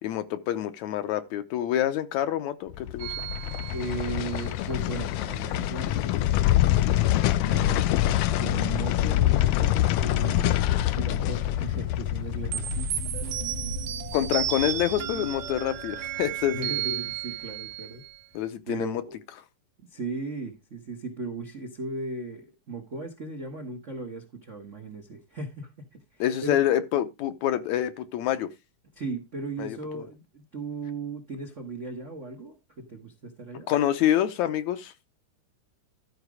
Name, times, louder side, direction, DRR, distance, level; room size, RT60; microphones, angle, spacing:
voice 1, 0.0-3.1 14.1-16.7 18.3-19.0 26.2-28.5 29.6-29.8 33.7-34.9, left 11 dB, 70° left, 2.0 m, -27 dB
sound 1, 2.7-15.9 16.2-16.3, left 13 dB, 90° left, 1.4 m, -26 dB
sound 2, 3.0-4.5 12.5-18.3, right 11 dB, 80° right, 2.5 m, -33 dB
voice 2, 3.7-7.8 8.4-12.9 16.5-18.0 18.6-19.2 19.8-26.6 28.9-33.7, right 3 dB, 60° right, 0.7 m, -37 dB
13.0 x 5.1 x 4.8 m
omnidirectional pair, 3.6 m